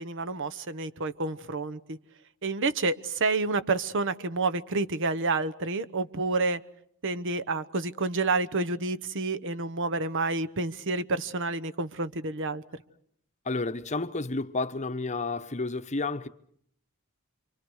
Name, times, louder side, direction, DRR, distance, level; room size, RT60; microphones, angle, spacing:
voice 1, 0.0-2.0 2.4-6.6 7.0-12.8, right 3 dB, 55° right, 1.0 m, -29 dB
voice 2, 13.4-16.3, left 3 dB, 30° left, 0.9 m, -31 dB
28.0 x 24.5 x 6.4 m
head